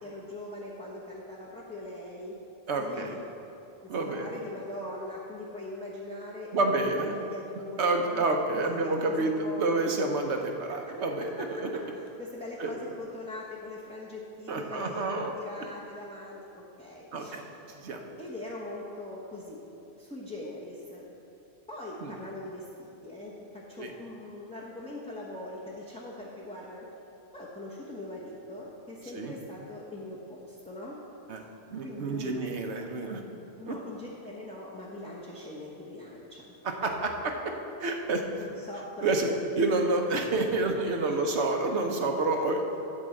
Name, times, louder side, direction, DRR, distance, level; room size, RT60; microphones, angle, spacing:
voice 1, 0.0-2.4 2.8-3.2 3.8-6.5 6.8-8.2 8.5-9.7 10.7-11.0 11.4-11.8 12.2-15.1 15.3-17.4 18.2-19.6 19.9-21.1 21.7-26.9 27.3-31.0 31.8-32.4 33.6-36.5 37.3-37.5 38.4-39.2 41.1-41.2, left 1 dB, 5° left, -6 dB, 1.0 m, -41 dB
voice 2, 2.7-3.2 3.9-4.3 6.5-7.2 7.8-11.3 11.6-11.7 12.6-12.7 14.5-15.3 17.1-17.4 17.7-18.0 22.0-22.1 23.8-23.9 29.1-29.4 31.3-31.4 31.7-33.2 33.7-33.8 36.6-37.3 37.8-38.2 39.0-39.3 39.6-42.6, right 2 dB, 85° right, 3 dB, 1.2 m, -28 dB
10.5 x 4.7 x 7.6 m, 2.8 s
omnidirectional pair, 1.1 m